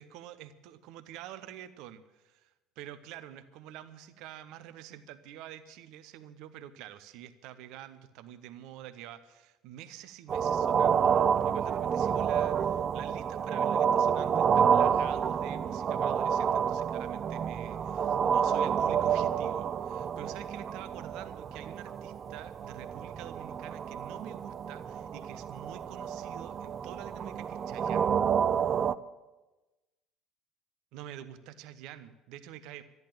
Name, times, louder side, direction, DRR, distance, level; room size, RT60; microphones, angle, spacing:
voice 1, 0.0-28.1 30.9-32.8, right 11 dB, 60° right, 13 dB, 0.8 m, -47 dB
sound 1, 10.3-29.0, right 7 dB, 40° right, 0.5 m, -29 dB
13.0 x 10.5 x 7.4 m, 1.1 s
figure-of-eight pair, 60°, 0 cm